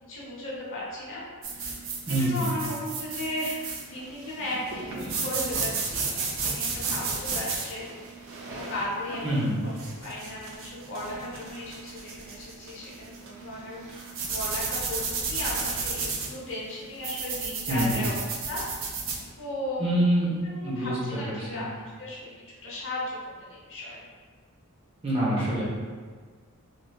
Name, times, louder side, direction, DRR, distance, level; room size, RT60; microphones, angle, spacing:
voice 1, 0.1-1.2 1.5-1.7 2.1-8.0 8.4-9.6 10.0-18.1 18.5-18.6 19.4-20.0 20.4-24.0, left 1 dB, 60° left, -6 dB, 0.8 m, -36 dB
sound 1, 1.4-19.2, right 4 dB, 60° right, 0.4 m, -33 dB
voice 2, 2.1-2.4 4.9-5.3 9.2-9.5 17.7-18.0 19.8-20.3 20.6-20.9 21.3-21.6 25.0-25.6, right 1 dB, 25° right, -7 dB, 0.7 m, -26 dB
3.2 x 2.6 x 2.3 m, 1.5 s
head